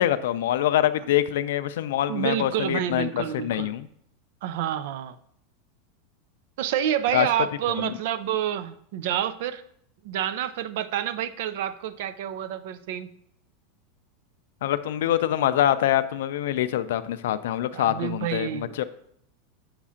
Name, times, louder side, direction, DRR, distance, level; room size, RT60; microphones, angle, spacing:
voice 1, 0.0-3.9 7.1-7.3 7.8-7.9 14.6-18.8, left 12 dB, 75° left, 12 dB, 0.4 m, -25 dB
voice 2, 2.1-3.7 4.4-5.2 6.6-9.6 10.0-13.1 17.7-18.8, right 10 dB, 55° right, 14 dB, 0.3 m, -28 dB
7.2 x 2.5 x 5.6 m, 0.70 s
supercardioid pair, 175°, 0 cm